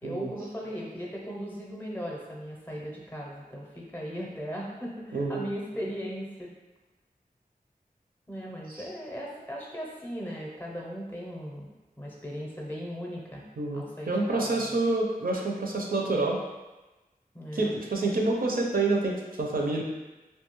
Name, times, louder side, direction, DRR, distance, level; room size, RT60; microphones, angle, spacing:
voice 1, 0.0-6.5 8.3-11.7 12.0-13.4 13.7-14.8 17.3-17.7, equal, 10° left, -3 dB, 0.6 m, -38 dB
voice 2, 5.1-5.5 8.7-8.8 13.6-16.4 17.5-19.8, right 2 dB, 70° right, -1 dB, 0.5 m, -28 dB
2.7 x 2.2 x 2.9 m, 1.1 s
wide cardioid pair, 60°, 16 cm